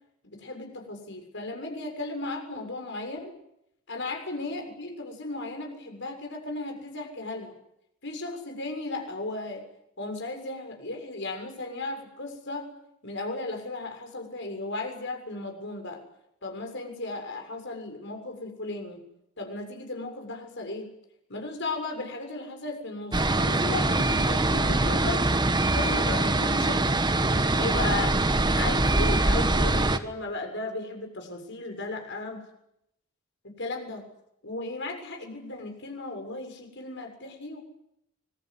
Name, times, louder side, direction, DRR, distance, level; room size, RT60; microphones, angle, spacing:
voice 1, 0.2-3.3 3.9-7.5 8.0-9.6 10.0-12.7 13.0-16.0 16.4-19.0 19.4-20.9 21.3-25.2 25.7-26.8 27.5-28.2 28.5-32.4 33.4-34.0 34.4-37.6, left 2 dB, 55° left, 3 dB, 7.1 m, -35 dB
sound 1, 23.1-30.0, right 2 dB, 20° right, 1.3 m, -23 dB
25.5 x 22.0 x 9.8 m, 0.81 s
head